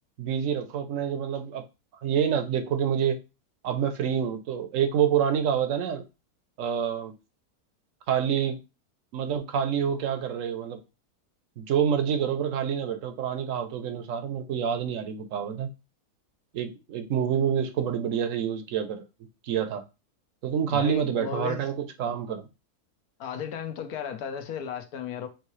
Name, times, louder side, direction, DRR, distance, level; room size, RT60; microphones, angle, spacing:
voice 1, 0.2-1.6 2.0-3.2 3.6-6.0 6.6-7.1 8.1-8.6 9.1-10.8 11.6-15.7 16.5-19.0 19.4-19.8 20.4-22.5, right 8 dB, 65° right, 0.9 m, -27 dB
voice 2, 20.7-21.6 23.2-25.3, left 8 dB, 75° left, 1.2 m, -34 dB
4.7 x 3.1 x 3.1 m
omnidirectional pair, 1.7 m